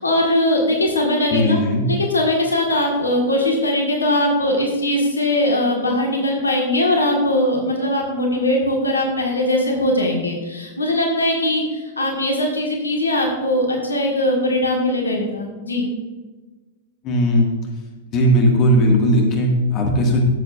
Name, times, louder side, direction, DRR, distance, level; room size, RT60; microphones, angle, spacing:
voice 1, 0.0-1.6 1.9-15.9, left 1 dB, 80° left, 0 dB, 1.5 m, -20 dB
voice 2, 1.3-1.8 17.0-17.5 18.1-20.2, equal, 35° left, 1 dB, 1.8 m, -17 dB
13.0 x 7.7 x 2.5 m, 1.3 s
figure-of-eight pair, 100°, 0 cm